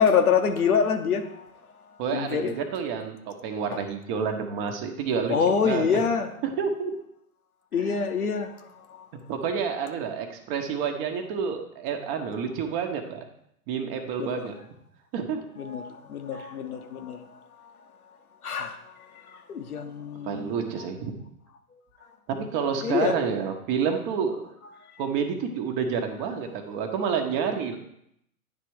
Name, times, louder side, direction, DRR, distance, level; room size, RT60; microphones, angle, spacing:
voice 1, 0.0-1.5 2.1-2.5 5.3-6.3 7.7-9.0 14.2-14.5 15.6-17.2 18.4-18.8 19.3-20.7 22.8-23.2, left 6 dB, 85° left, 6 dB, 1.0 m, -26 dB
voice 2, 2.0-6.0 6.4-6.9 7.8-8.0 9.3-13.2 13.7-14.5 15.1-15.4 16.3-16.5 20.2-21.2 22.3-24.5 25.0-27.8, right 6 dB, 35° right, 5 dB, 1.0 m, -29 dB
9.8 x 3.3 x 4.7 m, 0.74 s
hypercardioid pair, 120°, 43 cm